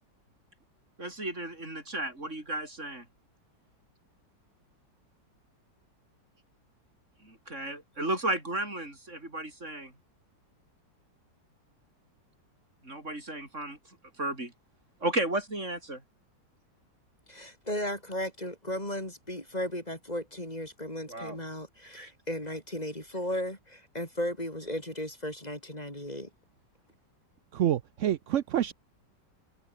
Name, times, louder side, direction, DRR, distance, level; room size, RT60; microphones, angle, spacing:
voice 1, 1.0-3.0 7.2-9.9 12.8-13.8 14.2-14.5 15.0-16.0 21.1-21.4 22.0-22.1, right 1 dB, 40° right, 6.1 m, -34 dB
voice 2, 17.3-26.3, left 1 dB, 20° left, 5.6 m, -35 dB
voice 3, 27.5-28.7, right 11 dB, 60° right, 0.8 m, -27 dB
omnidirectional pair, 1.9 m